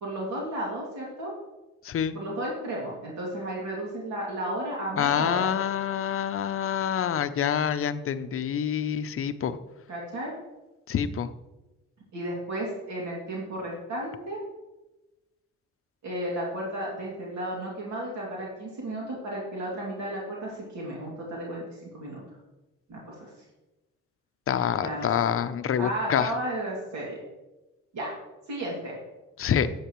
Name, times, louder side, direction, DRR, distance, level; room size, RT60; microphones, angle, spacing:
voice 1, 0.0-1.3 2.1-5.5 9.9-10.3 12.1-14.4 16.0-21.6 21.9-22.2 22.9-23.3 24.8-25.1 25.8-27.2 27.9-28.1 28.5-29.0, right 1 dB, 65° right, -4 dB, 2.5 m, -33 dB
voice 2, 1.8-2.2 5.0-9.6 10.9-11.3 24.5-26.3 29.4-29.7, left 8 dB, 45° left, 12 dB, 0.6 m, -26 dB
10.0 x 8.0 x 3.1 m, 1.1 s
cardioid pair, 90°, 30 cm